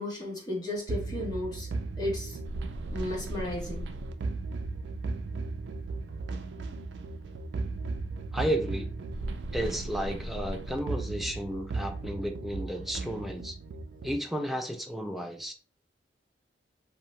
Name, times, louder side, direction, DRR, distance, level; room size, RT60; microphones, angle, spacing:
voice 1, 0.0-1.7 2.0-2.4 2.9-3.9, left 1 dB, 25° left, 1.0 m, -34 dB
sound 1, 0.9-14.2, right 3 dB, 70° right, 0.4 m, -36 dB
voice 2, 8.3-8.9 9.5-13.6 14.0-15.5, equal, ahead, 0.4 m, -33 dB
2.7 x 2.1 x 2.9 m
head